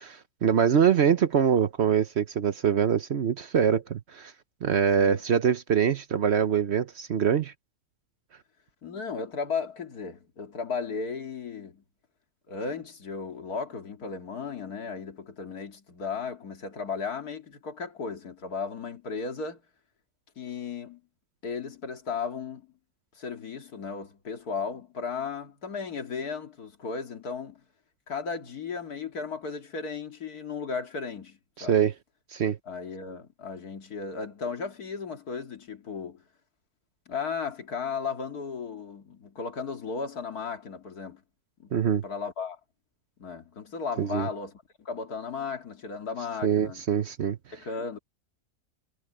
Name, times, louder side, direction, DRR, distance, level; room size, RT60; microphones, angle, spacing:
voice 1, 0.0-4.3 4.6-7.5 31.6-31.9 32.3-32.6 41.7-42.0 44.0-44.3 46.4-47.4, right 8 dB, 55° right, 0.9 m, -24 dB
voice 2, 8.8-11.8 12.5-19.6 20.4-21.0 21.4-22.7 23.1-27.6 28.1-31.8 32.7-36.2 37.1-41.2 41.6-41.7 42.0-42.6 43.2-46.8 47.5-48.0, left 5 dB, 80° left, 2.6 m, -35 dB
omnidirectional pair, 1.6 m